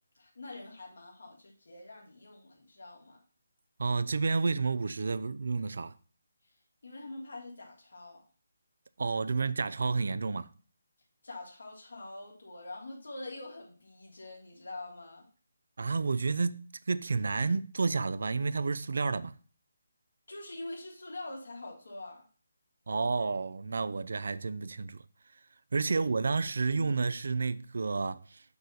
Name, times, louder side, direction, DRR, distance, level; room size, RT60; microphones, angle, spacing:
voice 1, 0.2-3.2 6.4-6.5 6.8-8.2 11.2-15.3 20.3-22.2 25.9-26.0 26.7-26.9, left 2 dB, 80° left, 3.4 m, -45 dB
voice 2, 3.8-5.9 9.0-10.5 15.8-19.4 22.9-25.0 25.7-28.4, right 4 dB, 65° right, 0.5 m, -30 dB
6.8 x 4.1 x 6.5 m
hypercardioid pair, 165°, 0 cm